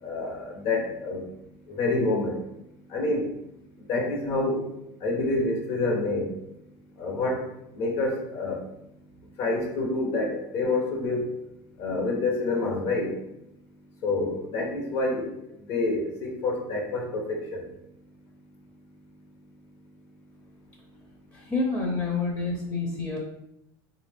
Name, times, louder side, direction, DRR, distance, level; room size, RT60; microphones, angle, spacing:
voice 1, 0.0-1.2 1.8-2.4 2.9-3.3 3.9-4.7 5.0-6.3 7.0-7.5 7.8-8.6 9.4-11.2 11.8-13.1 14.0-15.3 15.7-17.7, left 2 dB, 65° left, 1 dB, 1.0 m, -27 dB
voice 2, 21.3-23.2, left 3 dB, 25° left, 0 dB, 0.6 m, -28 dB
3.6 x 2.4 x 3.4 m, 0.85 s
supercardioid pair, 105°, 12 cm